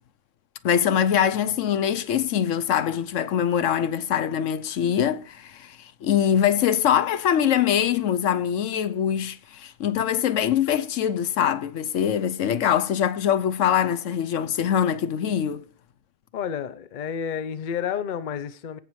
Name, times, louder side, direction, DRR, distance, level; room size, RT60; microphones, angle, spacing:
voice 1, 0.6-15.6, left 9 dB, 75° left, 1.1 m, -23 dB
voice 2, 16.3-18.8, left 8 dB, 45° left, 0.7 m, -30 dB
16.5 x 6.7 x 3.1 m
omnidirectional pair, 1.3 m